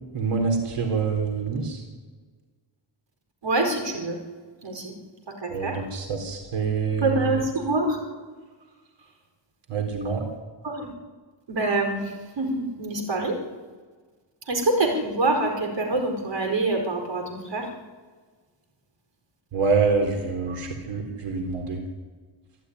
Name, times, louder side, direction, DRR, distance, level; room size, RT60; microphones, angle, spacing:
voice 1, 0.1-1.8 5.5-7.1 9.7-10.2 19.5-21.8, right 5 dB, 85° right, 3 dB, 4.1 m, -26 dB
voice 2, 3.4-4.2 4.6-4.9 5.4-5.8 7.0-8.0 10.6-10.9 11.5-13.4 14.5-17.7 20.5-20.6, right 2 dB, 60° right, 3 dB, 4.9 m, -25 dB
27.0 x 14.0 x 9.8 m, 1.5 s
wide cardioid pair, 155°, 49 cm